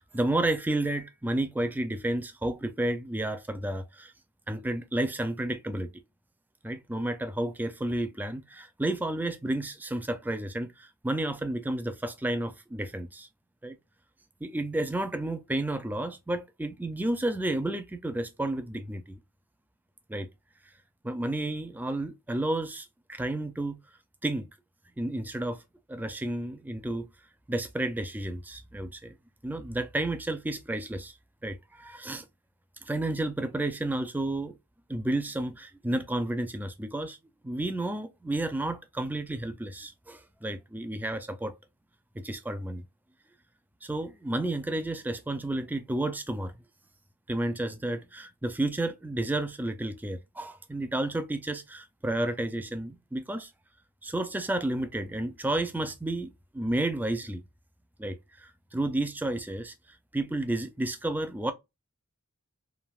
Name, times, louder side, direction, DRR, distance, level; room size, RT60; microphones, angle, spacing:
voice 1, 0.0-4.1 4.5-5.9 6.6-13.3 13.6-13.8 14.4-19.2 20.1-20.3 21.0-23.8 24.2-24.5 25.0-25.6 25.9-27.1 27.5-29.2 29.4-31.1 31.4-32.3 32.8-34.6 34.9-37.2 37.4-41.5 42.1-42.8 43.8-46.5 47.3-53.5 54.0-57.4 58.0-59.7 60.1-61.5, right 1 dB, 10° right, 0.3 m, -31 dB
3.4 x 2.5 x 2.3 m
head